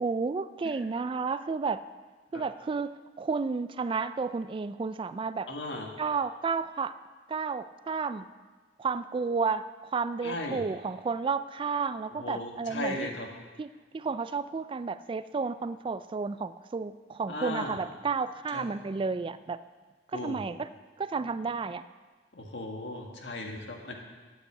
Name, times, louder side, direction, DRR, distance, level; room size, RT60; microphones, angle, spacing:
voice 1, 0.0-1.8 2.3-5.5 6.0-7.0 7.3-8.2 8.8-13.1 13.6-19.6 20.1-21.8, right 4 dB, 30° right, 14 dB, 0.3 m, -32 dB
voice 2, 5.5-5.9 10.2-10.6 12.2-13.3 17.3-17.8 18.5-18.6 20.1-20.4 22.3-23.9, left 1 dB, 80° left, 1 dB, 1.8 m, -36 dB
9.0 x 8.1 x 8.0 m, 1.4 s
head